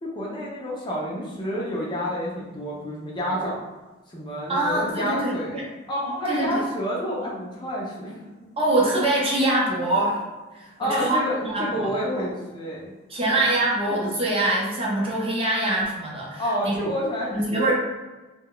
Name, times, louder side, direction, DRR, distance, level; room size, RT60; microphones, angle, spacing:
voice 1, 0.0-3.6 4.1-5.6 5.9-8.2 10.8-12.9 13.3-13.4 16.4-17.6, equal, 20° left, -4 dB, 0.4 m, -29 dB
sound 1, 1.5-1.9 3.3-3.6 4.7-5.0 6.0-6.4 7.2-7.4 8.0-8.2 9.3-9.5 9.9-10.2 11.3-11.5 12.1-12.4 13.9-14.2, left 1 dB, 60° left, 0.7 m, -38 dB
voice 2, 4.5-5.6 6.3-6.6 8.6-10.2 10.5-11.9 13.1-16.7 17.3-17.7, right 1 dB, 25° right, -4 dB, 0.6 m, -24 dB
2.2 x 2.1 x 3.7 m, 1.2 s
head